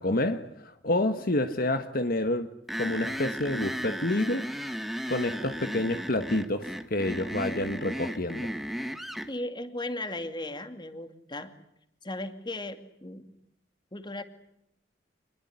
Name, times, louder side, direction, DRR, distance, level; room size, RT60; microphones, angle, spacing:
voice 1, 0.0-2.5 2.8-4.5 5.1-8.5, left 1 dB, 55° left, 8 dB, 1.6 m, -28 dB
sound 1, 2.7-9.3, equal, ahead, 1.6 m, -35 dB
voice 2, 9.3-11.5 12.0-13.3 13.9-14.2, left 1 dB, 25° left, 8 dB, 2.5 m, -36 dB
28.0 x 22.0 x 9.7 m, 0.76 s
head